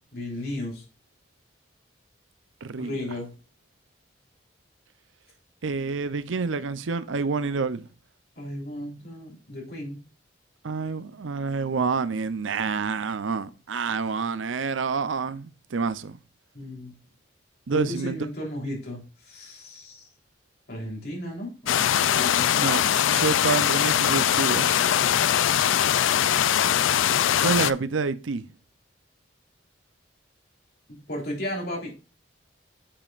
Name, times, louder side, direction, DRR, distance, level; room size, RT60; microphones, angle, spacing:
voice 1, 0.1-0.8 2.7-3.3 8.4-10.0 16.5-16.9 17.7-20.1 20.7-22.5 30.9-31.9, left 1 dB, 55° left, 3.5 m, -34 dB
voice 2, 2.6-3.1 5.6-7.9 10.6-16.2 17.7-18.2 22.6-24.8 27.4-28.4, right 4 dB, 90° right, 0.6 m, -28 dB
sound 1, 21.7-27.7, left 10 dB, 90° left, 0.4 m, -22 dB
8.6 x 7.0 x 2.5 m
head